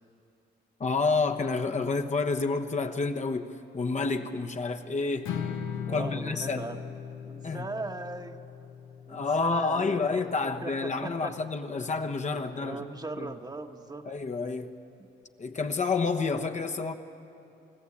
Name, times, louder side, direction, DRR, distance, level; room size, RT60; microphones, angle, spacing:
voice 1, 0.8-5.3 5.9-6.7 7.4-7.6 9.1-12.8 13.2-13.3 14.1-14.8 15.4-16.9, left 4 dB, 35° left, 5 dB, 1.1 m, -29 dB
Strum, 5.3-11.5, left 8 dB, 90° left, 1.8 m, -39 dB
voice 2, 5.8-6.8 7.2-8.4 9.1-10.1 10.4-11.4 12.5-14.1 15.0-15.1, right 2 dB, 20° right, 5 dB, 1.3 m, -38 dB
29.5 x 14.5 x 8.6 m, 2.7 s
cardioid pair, 90°, 20 cm